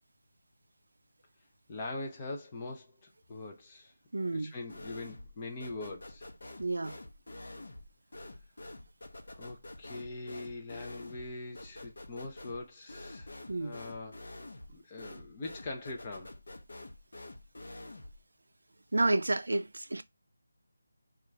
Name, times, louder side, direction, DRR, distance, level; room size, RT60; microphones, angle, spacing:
voice 1, 1.7-3.9 4.3-6.3 9.3-13.3 13.6-14.2 14.7-16.3, left 2 dB, 20° left, 0.5 m, -42 dB
voice 2, 4.1-4.5 6.6-7.0 13.5-13.8 18.9-20.0, right 2 dB, 85° right, 0.4 m, -30 dB
sound 1, 4.7-5.4 5.6-18.2, left 2 dB, 65° left, 0.8 m, -47 dB
2.9 x 2.4 x 3.2 m
figure-of-eight pair, 175°, 0 cm